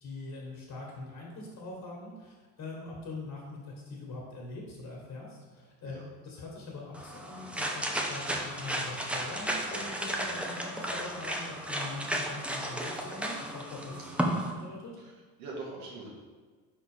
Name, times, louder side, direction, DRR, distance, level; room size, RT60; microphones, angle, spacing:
voice 1, 0.0-14.9, left 3 dB, 45° left, -2 dB, 1.7 m, -43 dB
sound 1, 6.9-14.5, right 1 dB, 5° right, 0.6 m, -34 dB
voice 2, 15.0-16.1, right 3 dB, 85° right, -4 dB, 1.8 m, -44 dB
4.4 x 4.2 x 5.1 m, 1.4 s
supercardioid pair, 85°, 44 cm